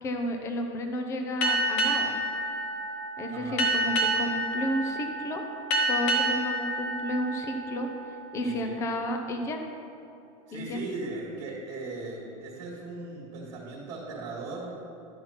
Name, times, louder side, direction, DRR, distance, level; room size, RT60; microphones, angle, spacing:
voice 1, 0.0-2.2 3.2-5.4 5.9-7.9 8.3-9.6 10.5-10.8, equal, 15° left, 5 dB, 0.6 m, -32 dB
Boat Water vehicle, 1.4-8.5, right 1 dB, 35° left, 1.1 m, -29 dB
voice 2, 3.3-3.7 8.4-8.8 10.5-14.8, right 2 dB, 30° right, -4 dB, 1.8 m, -38 dB
11.0 x 6.0 x 5.8 m, 2.6 s
supercardioid pair, 175°, 18 cm